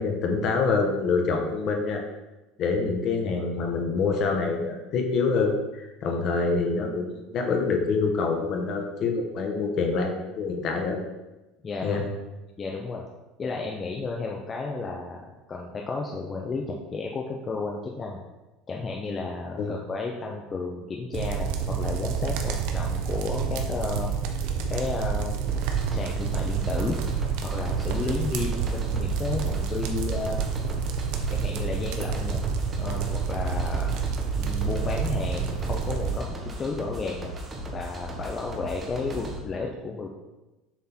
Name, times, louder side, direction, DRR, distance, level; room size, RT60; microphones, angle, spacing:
voice 1, 0.0-2.0 2.6-11.0 11.8-12.0 19.6-19.7, left 4 dB, 45° left, 3 dB, 1.1 m, -26 dB
voice 2, 11.6-12.0 12.6-13.0 13.4-15.2 15.5-18.2 18.7-24.1 24.7-25.4 25.9-27.0 27.4-30.5 31.3-32.4 32.8-34.0 34.3-37.3 37.7-40.1, left 3 dB, 25° left, 0 dB, 0.7 m, -32 dB
sound 1, 21.1-36.2, right 6 dB, 70° right, 0.8 m, -28 dB
sound 2, 25.5-39.4, equal, 25° right, 1.1 m, -38 dB
7.3 x 3.7 x 4.4 m, 1.1 s
cardioid pair, 135°, 0 cm